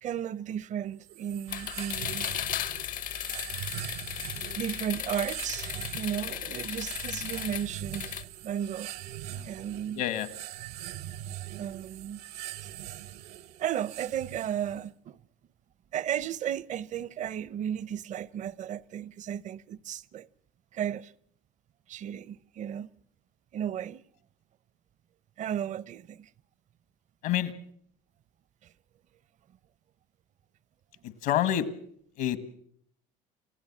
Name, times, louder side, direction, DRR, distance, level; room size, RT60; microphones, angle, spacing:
voice 1, 0.0-2.3 4.5-8.9 9.4-10.0 11.6-12.2 12.6-12.7 13.6-15.2 15.9-20.3 20.7-21.1 21.9-22.9 23.5-24.0 25.4-26.3 28.6-28.7, right 9 dB, 50° right, 0.8 m, -34 dB
sound 1, 1.0-14.9, right 13 dB, 70° right, 1.1 m, -42 dB
sound 2, 1.5-8.2, left 10 dB, 55° left, 0.9 m, -36 dB
voice 2, 9.9-10.3 27.2-27.5 31.0-31.7 32.2-32.4, left 11 dB, 70° left, 1.8 m, -28 dB
29.0 x 15.5 x 7.4 m
supercardioid pair, 75°, 16 cm